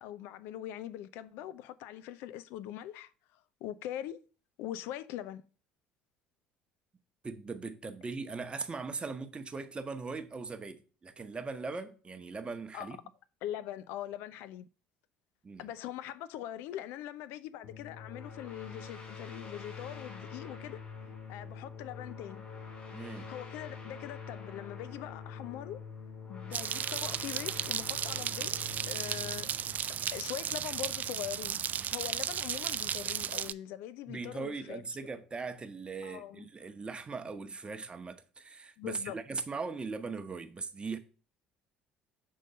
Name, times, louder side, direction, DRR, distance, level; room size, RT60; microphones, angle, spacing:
voice 1, 0.0-4.2 4.6-5.4 12.7-13.0 13.4-14.7 15.6-20.8 21.3-22.5 23.3-25.8 26.3-31.6 31.9-34.8 36.0-36.5 38.8-39.2, left 12 dB, 65° left, 0.4 m, -42 dB
voice 2, 7.2-13.0 15.4-15.7 22.9-23.3 34.1-41.0, right 4 dB, 25° right, 0.9 m, -40 dB
sound 1, 17.6-31.0, left 5 dB, 35° left, 3.5 m, -46 dB
sound 2, 26.5-33.5, right 9 dB, 40° right, 0.3 m, -35 dB
6.6 x 3.8 x 5.3 m
hypercardioid pair, 60°, 4 cm